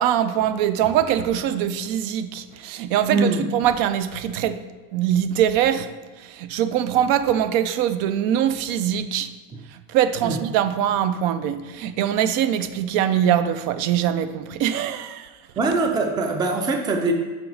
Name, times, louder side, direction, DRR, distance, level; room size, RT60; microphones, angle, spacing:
voice 1, 0.0-4.6 4.9-5.9 6.3-9.3 9.9-15.3, right 10 dB, 70° right, 11 dB, 0.6 m, -22 dB
voice 2, 3.1-3.4 10.2-10.4 15.6-17.1, right 3 dB, 10° right, 4 dB, 0.3 m, -22 dB
6.1 x 4.5 x 3.9 m, 1.3 s
cardioid pair, 165°, 36 cm